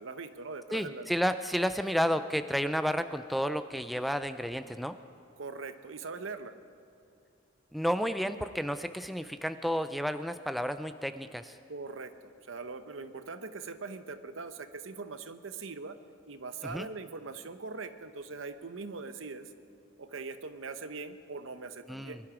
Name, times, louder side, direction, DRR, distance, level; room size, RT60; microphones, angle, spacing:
voice 1, 0.0-1.1 5.4-6.5 11.7-16.0 16.3-19.5 20.0-22.2, right 4 dB, 80° right, 10 dB, 0.9 m, -41 dB
voice 2, 0.7-5.0 7.7-11.6 16.6-16.9 21.9-22.2, equal, ahead, 10 dB, 0.3 m, -31 dB
23.0 x 12.0 x 4.9 m, 2.6 s
head